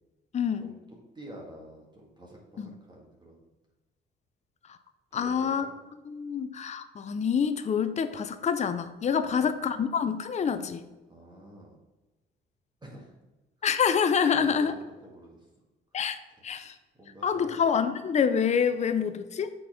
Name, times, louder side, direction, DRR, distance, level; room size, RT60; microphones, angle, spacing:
voice 1, 0.3-0.7 2.6-2.7 5.1-5.7 6.1-10.8 13.6-14.7 15.9-16.2 16.4-16.7 17.2-19.5, left 7 dB, 35° left, 9 dB, 0.5 m, -27 dB
voice 2, 1.1-3.5 5.1-5.7 9.2-9.7 11.1-11.8 12.8-13.1 13.6-13.7 14.3-14.8 15.0-15.5 16.4-16.5 16.9-17.6, right 1 dB, 20° right, -2 dB, 1.7 m, -48 dB
6.7 x 4.3 x 4.8 m, 1.1 s
cardioid pair, 90°, 20 cm